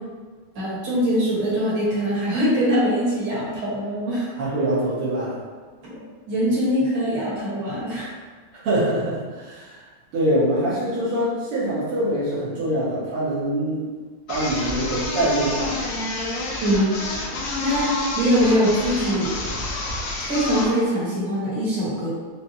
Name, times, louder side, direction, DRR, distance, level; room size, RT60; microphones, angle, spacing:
voice 1, 0.6-4.3 5.9-8.1 16.6-17.0 17.6-19.3 20.3-22.1, equal, 55° right, -9 dB, 2.0 m, -22 dB
voice 2, 4.4-5.4 8.5-9.8 10.1-13.9 14.3-15.7, right 1 dB, 80° right, -10 dB, 2.0 m, -24 dB
sound 1, 14.3-20.8, left 2 dB, 70° left, 0.9 m, -29 dB
5.7 x 2.3 x 2.7 m, 1.5 s
omnidirectional pair, 2.4 m